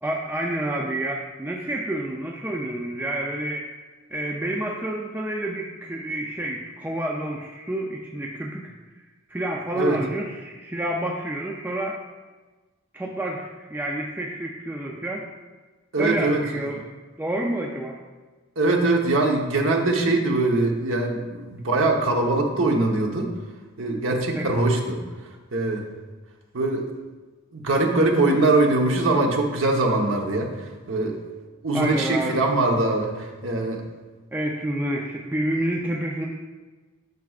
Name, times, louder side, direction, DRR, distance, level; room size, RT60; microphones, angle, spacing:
voice 1, 0.0-3.7 4.1-8.7 9.3-12.0 12.9-15.3 16.0-16.8 17.2-18.0 24.4-24.5 31.7-32.3 34.3-36.3, right 1 dB, 10° right, -1 dB, 0.5 m, -29 dB
voice 2, 15.9-16.6 18.6-23.3 23.8-25.0 25.5-25.8 26.5-26.8 27.5-31.1 31.6-33.8, right 2 dB, 70° right, 1 dB, 1.1 m, -22 dB
9.2 x 6.1 x 2.4 m, 1.3 s
head